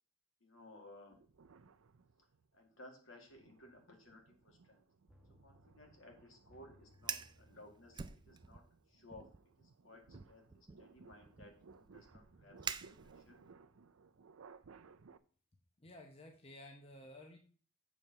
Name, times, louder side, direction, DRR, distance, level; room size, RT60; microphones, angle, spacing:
voice 1, 0.4-1.2 2.5-4.8 5.4-8.6 8.9-9.3 9.6-10.0 10.3-12.6 13.0-13.4, left 1 dB, 70° left, 1 dB, 2.3 m, -58 dB
sound 1, 1.1-2.6 3.1-15.2, right 5 dB, 85° right, 0.5 m, -62 dB
sound 2, 5.1-9.8 10.1-10.2, equal, 5° right, 1.2 m, -68 dB
Fire, 6.9-7.4 7.9-8.7 9.1-9.4 10.1-13.5, right 6 dB, 20° right, 0.3 m, -46 dB
voice 2, 15.8-17.4, left 1 dB, 30° left, 3 dB, 0.9 m, -54 dB
7.2 x 4.6 x 6.7 m, 0.43 s
head